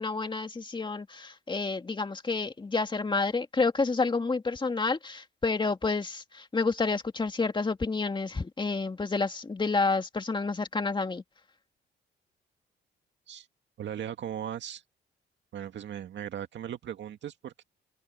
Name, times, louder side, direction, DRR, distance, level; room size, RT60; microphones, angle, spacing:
voice 1, 0.0-11.2, left 4 dB, 25° left, 2.4 m, -29 dB
voice 2, 13.8-14.8 15.5-17.6, right 10 dB, 65° right, 2.1 m, -38 dB
cardioid pair, 90°, 20 cm